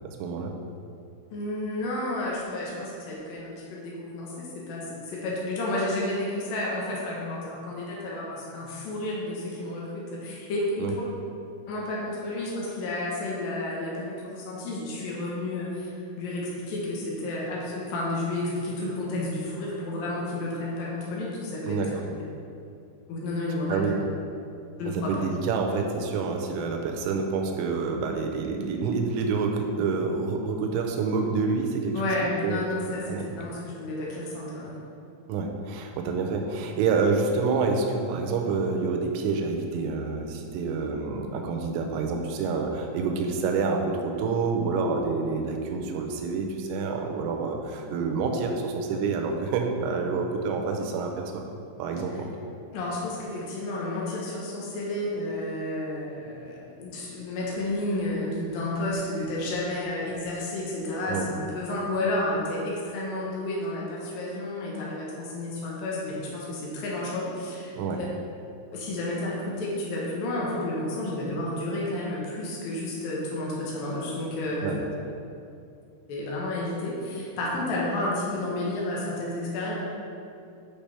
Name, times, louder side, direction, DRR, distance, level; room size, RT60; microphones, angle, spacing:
voice 1, 0.2-0.5 10.8-10.9 21.7-21.9 23.7-24.0 24.9-32.1 32.4-32.6 33.1-33.2 35.3-51.4 51.8-52.3 61.1-61.3 67.7-68.0 74.6-74.8, right 4 dB, 85° right, 2 dB, 3.3 m, -27 dB
voice 2, 1.3-11.0 11.7-15.9 16.2-21.8 23.1-23.9 24.8-25.1 31.9-34.8 52.7-68.1 68.7-74.7 76.1-79.7, left 1 dB, 90° left, -4 dB, 2.0 m, -31 dB
8.7 x 5.8 x 3.4 m, 2.5 s
omnidirectional pair, 5.8 m